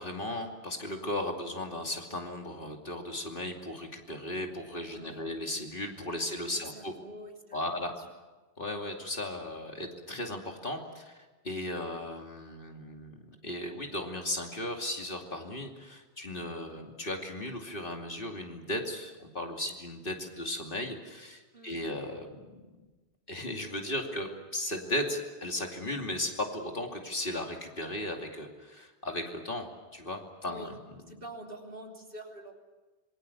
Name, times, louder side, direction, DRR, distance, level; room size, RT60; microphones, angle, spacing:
voice 1, 0.0-6.9 7.5-7.9 8.6-11.2 11.4-22.9 23.3-30.7 31.0-31.1, left 1 dB, 50° left, 2 dB, 2.9 m, -36 dB
voice 2, 6.5-8.1 21.5-21.8 30.5-30.8 31.1-32.5, right 1 dB, 55° right, 1 dB, 3.5 m, -46 dB
26.5 x 23.0 x 7.1 m, 1.2 s
omnidirectional pair, 1.1 m